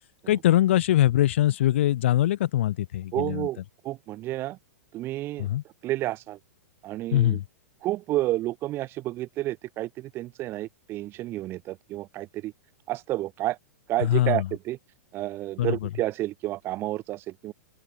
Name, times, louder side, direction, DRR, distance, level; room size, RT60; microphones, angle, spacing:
voice 1, 0.3-3.5 5.4-5.6 7.1-7.4 14.0-14.5 15.6-15.9, left 13 dB, 50° left, 1.9 m, -22 dB
voice 2, 3.1-4.6 4.9-5.5 5.8-6.4 6.8-7.4 7.8-12.5 12.9-13.6 13.9-14.8 15.1-17.5, right 16 dB, 30° right, 1.4 m, -30 dB
open air
figure-of-eight pair, 105°, 8 cm